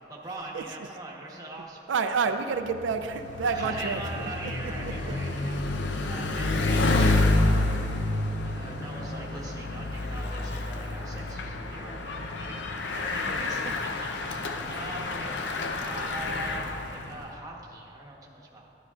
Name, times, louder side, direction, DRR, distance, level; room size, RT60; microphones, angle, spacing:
voice 1, 0.1-2.4 3.4-13.9 14.2-18.7, right 2 dB, 20° right, -3 dB, 1.1 m, -42 dB
voice 2, 1.9-4.3 12.9-13.0, right 5 dB, 90° right, 8 dB, 0.4 m, -29 dB
Bicycle, 2.6-17.3, left 2 dB, 70° left, 0.6 m, -29 dB
12.5 x 9.9 x 2.4 m, 2.9 s
head